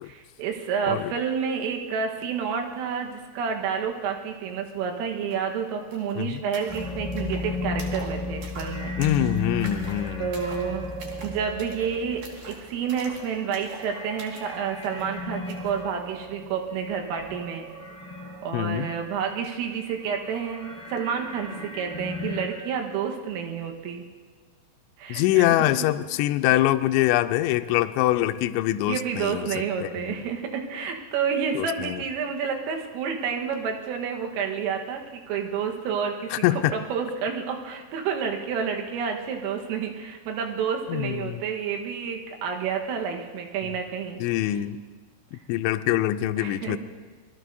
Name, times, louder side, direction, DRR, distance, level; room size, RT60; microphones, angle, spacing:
voice 1, 0.0-8.9 10.2-10.9 11.2-17.7 18.4-24.1 25.0-25.8 28.9-36.5 36.7-44.2 46.4-46.8, right 6 dB, 85° right, 2 dB, 4.0 m, -29 dB
sound 1, 5.3-5.4 5.6-15.8, right 3 dB, 50° right, 2.8 m, -45 dB
sound 2, 6.7-19.5 19.8-22.5, left 2 dB, 10° left, 3.1 m, -35 dB
voice 2, 9.0-10.3 18.5-18.9 25.1-30.2 31.6-32.0 36.3-36.7 40.9-41.4 43.6-43.7 44.2-44.8 45.3-46.8, left 14 dB, 85° left, 10 dB, 2.7 m, -24 dB
25.5 x 20.5 x 2.7 m, 1.5 s
omnidirectional pair, 5.7 m